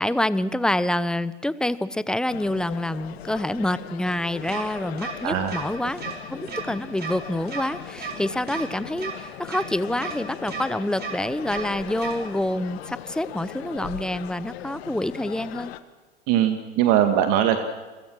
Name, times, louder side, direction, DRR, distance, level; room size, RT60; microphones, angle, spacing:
voice 1, 0.0-6.0 6.3-15.7, left 1 dB, ahead, 16 dB, 0.9 m, -27 dB
sound 1, 2.3-15.8, left 13 dB, 65° left, 1.6 m, -39 dB
sound 2, 4.5-4.6 5.0-5.1 5.5-5.6 6.0-6.1 6.5-6.6 7.0-7.1 7.5-7.6 8.0-8.1 8.5-8.6 9.0-9.1 9.5-9.6 10.0-10.1 10.5-10.6 11.0-11.1 11.5-11.6 12.0-12.1, right 6 dB, 30° right, 5.4 m, -33 dB
voice 2, 5.2-5.5 16.3-17.6, right 11 dB, 50° right, 7 dB, 1.9 m, -21 dB
30.0 x 22.5 x 6.3 m, 1.3 s
hypercardioid pair, 100°, 33 cm